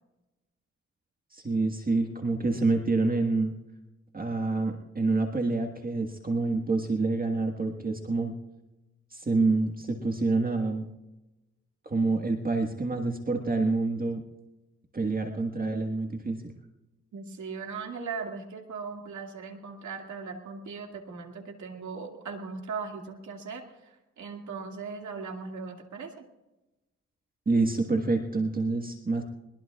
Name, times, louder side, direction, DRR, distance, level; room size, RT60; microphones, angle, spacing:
voice 1, 1.3-3.5 4.1-8.3 9.1-10.9 11.8-14.2 14.9-16.5 27.4-29.2, right 3 dB, 30° right, 3 dB, 1.6 m, -27 dB
voice 2, 17.1-26.2, right 5 dB, 80° right, 3 dB, 2.3 m, -39 dB
22.0 x 21.0 x 2.4 m, 1.0 s
cardioid pair, 85°, 29 cm